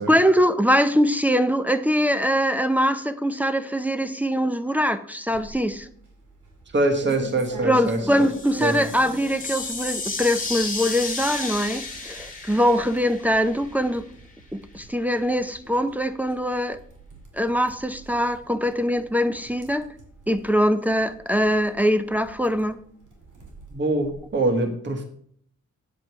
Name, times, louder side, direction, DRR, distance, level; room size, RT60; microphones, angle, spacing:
voice 1, 0.0-5.9 7.6-14.1 14.5-16.8 17.3-19.9 20.3-22.8, equal, 5° right, 0.6 m, -22 dB
sound 1, 5.3-24.4, right 2 dB, 90° right, 2.6 m, -45 dB
voice 2, 6.7-8.3 8.6-8.9 23.7-25.0, right 2 dB, 40° right, 1.4 m, -24 dB
sound 2, 8.0-13.9, left 3 dB, 25° left, 2.0 m, -33 dB
8.7 x 7.9 x 4.6 m
wide cardioid pair, 110°, 30 cm